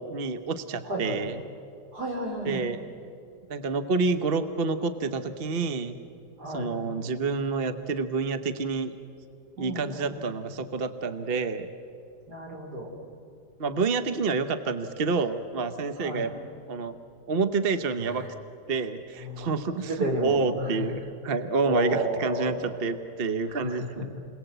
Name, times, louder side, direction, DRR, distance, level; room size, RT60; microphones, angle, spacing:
voice 1, 0.0-1.4 2.4-2.8 3.5-5.9 6.5-8.9 9.6-11.7 13.6-16.3 16.7-17.0 17.3-18.2 18.7-24.1, right 4 dB, 40° right, 10 dB, 1.0 m, -28 dB
voice 2, 0.8-1.2 1.9-2.6 6.4-6.7 9.6-10.2 12.3-12.9 16.0-16.3 18.0-18.3 19.2-19.5 19.8-20.9 21.6-22.8 23.5-24.2, right 1 dB, 65° right, 1 dB, 4.7 m, -32 dB
28.5 x 22.0 x 8.0 m, 2.5 s
omnidirectional pair, 1.9 m